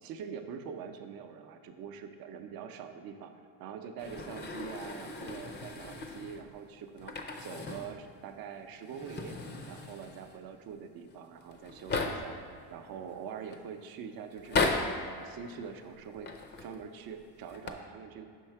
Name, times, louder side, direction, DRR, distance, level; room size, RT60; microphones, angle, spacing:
voice 1, 0.0-3.3 3.6-7.1 7.4-9.4 9.7-12.4 12.7-14.7 15.0-16.3 16.6-18.3, right 7 dB, 55° right, 7 dB, 0.6 m, -44 dB
sound 1, 4.0-6.5 7.0-8.0 8.3-8.4 8.8-10.4 11.1-11.2 11.4-12.4 13.1-13.6 14.3-15.1 16.1-16.8 17.4-17.7, left 3 dB, 25° left, 0.5 m, -36 dB
5.5 x 4.6 x 4.5 m, 2.3 s
supercardioid pair, 90°, 44 cm